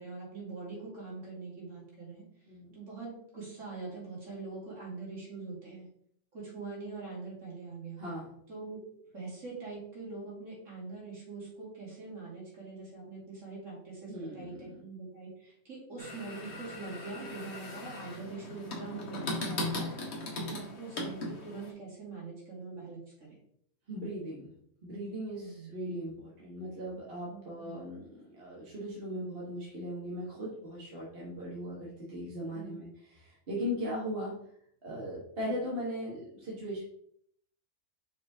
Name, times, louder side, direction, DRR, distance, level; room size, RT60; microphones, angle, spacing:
voice 1, 0.0-2.2 2.7-5.9 6.3-8.0 8.5-8.8 9.1-20.1 20.4-23.0 23.3-23.4 25.3-25.8 27.3-27.8 32.5-32.9, right 3 dB, 65° right, -5 dB, 2.9 m, -43 dB
voice 2, 8.0-8.3 14.1-14.6 23.9-24.5 24.8-34.3 34.8-36.8, equal, 45° right, -5 dB, 1.7 m, -38 dB
sound 1, 16.0-21.7, left 2 dB, 55° left, 1.5 m, -38 dB
6.0 x 4.5 x 3.6 m, 0.67 s
omnidirectional pair, 1.4 m